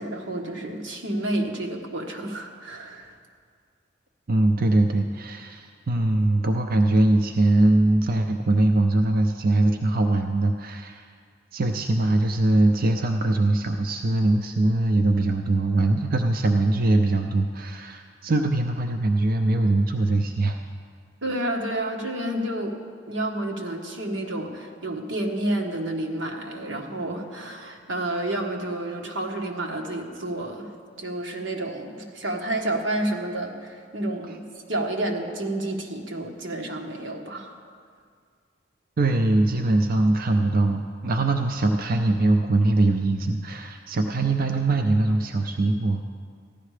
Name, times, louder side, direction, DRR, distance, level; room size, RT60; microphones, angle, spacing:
voice 1, 0.0-3.1 21.2-22.7 23.1-30.7 31.0-34.4 34.7-37.6, right 1 dB, 90° right, 2 dB, 1.5 m, -30 dB
voice 2, 4.3-11.0 11.5-20.6 39.0-46.0, right 2 dB, 50° right, 4 dB, 0.6 m, -22 dB
15.0 x 11.5 x 5.0 m, 2.1 s
head